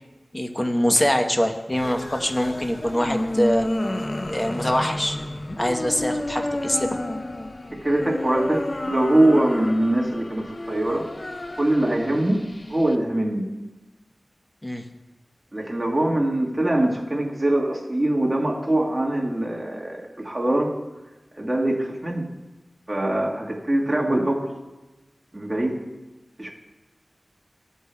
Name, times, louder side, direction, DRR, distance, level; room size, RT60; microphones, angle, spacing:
voice 1, 0.3-3.7 4.3-5.2 5.6-7.0 14.6-14.8 24.0-24.2, equal, 20° left, 4 dB, 0.9 m, -24 dB
sound 1, 1.7-12.9, left 1 dB, 40° left, 0.5 m, -31 dB
voice 2, 7.7-11.1 11.6-12.4 12.7-13.5 15.5-20.7 21.4-22.3 22.9-24.5 25.3-25.8 26.4-26.5, right 1 dB, 30° right, -2 dB, 1.4 m, -23 dB
15.5 x 8.1 x 2.2 m, 1.1 s
wide cardioid pair, 65°, 0 cm